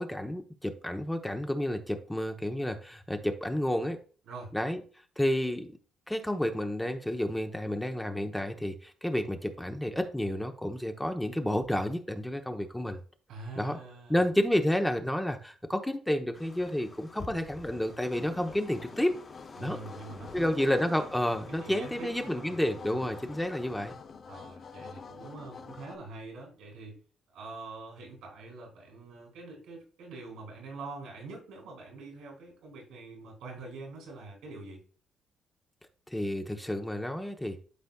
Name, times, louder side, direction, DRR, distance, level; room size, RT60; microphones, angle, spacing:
voice 1, 0.0-4.0 4.5-4.8 5.2-5.7 6.1-13.0 13.6-13.8 14.1-19.2 19.6-19.8 20.3-23.9 36.1-37.6, left 1 dB, 5° left, 5 dB, 0.8 m, -30 dB
voice 2, 13.3-14.2 19.6-20.9 21.5-23.1 24.3-27.0 27.3-34.8, right 3 dB, 90° right, 0 dB, 3.1 m, -45 dB
sound 1, 16.3-24.0, left 3 dB, 30° left, 1.8 m, -49 dB
sound 2, 18.0-26.0, left 5 dB, 50° left, 0.7 m, -48 dB
11.5 x 4.2 x 2.3 m, 0.40 s
cardioid pair, 90°, 0 cm